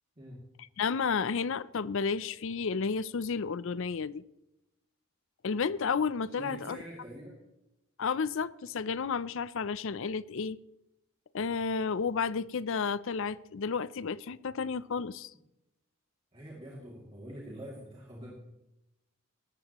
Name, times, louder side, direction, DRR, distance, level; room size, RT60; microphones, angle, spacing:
voice 1, 0.8-4.2 5.4-6.8 8.0-10.6 11.3-15.3, left 5 dB, 60° left, 0.5 m, -32 dB
voice 2, 6.3-7.4 16.3-18.3, equal, 25° right, 2.5 m, -45 dB
18.0 x 13.5 x 3.0 m
head